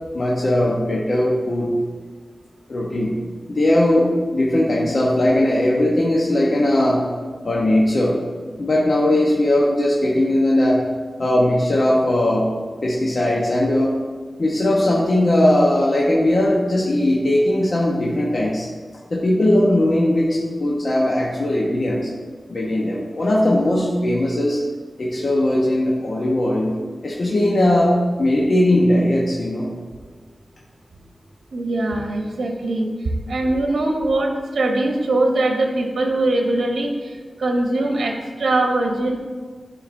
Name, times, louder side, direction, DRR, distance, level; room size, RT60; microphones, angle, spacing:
voice 1, 0.1-1.7 2.7-3.1 3.5-7.0 7.4-8.2 8.6-10.8 11.2-12.5 12.8-14.0 14.4-18.7 19.1-22.1 22.5-24.6 25.0-26.8 27.0-29.7, left 1 dB, 50° left, -4 dB, 0.9 m, -19 dB
voice 2, 31.5-39.2, right 2 dB, 85° right, 2 dB, 0.9 m, -22 dB
11.5 x 4.8 x 2.6 m, 1.5 s
wide cardioid pair, 115°, 0 cm